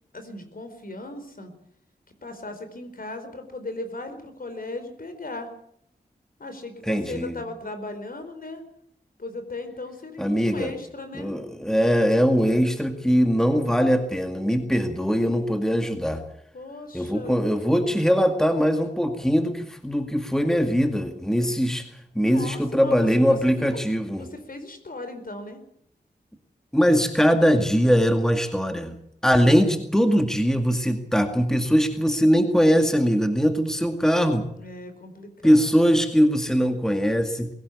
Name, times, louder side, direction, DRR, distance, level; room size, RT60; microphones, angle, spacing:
voice 1, 0.1-1.5 2.2-5.5 6.4-8.6 9.2-11.3 16.5-17.9 22.2-23.4 24.2-25.6 34.5-36.0, left 2 dB, 55° left, 8 dB, 4.5 m, -37 dB
voice 2, 6.9-7.4 10.2-10.7 11.2-16.2 16.9-21.8 22.2-24.3 26.7-28.9 29.2-34.5 35.4-37.5, equal, 5° left, 6 dB, 2.1 m, -21 dB
21.0 x 17.0 x 8.4 m, 0.71 s
wide cardioid pair, 85°, 17 cm